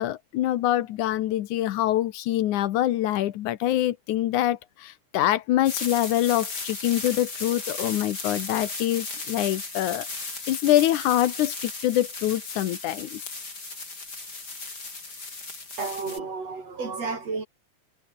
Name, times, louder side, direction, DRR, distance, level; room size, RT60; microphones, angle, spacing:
voice 1, 0.0-13.2, left 13 dB, 80° left, 2.5 m, -25 dB
sound 1, 5.7-16.2, left 3 dB, 30° left, 5.4 m, -36 dB
voice 2, 15.8-17.5, right 4 dB, 55° right, 5.9 m, -31 dB
omnidirectional pair, 3.5 m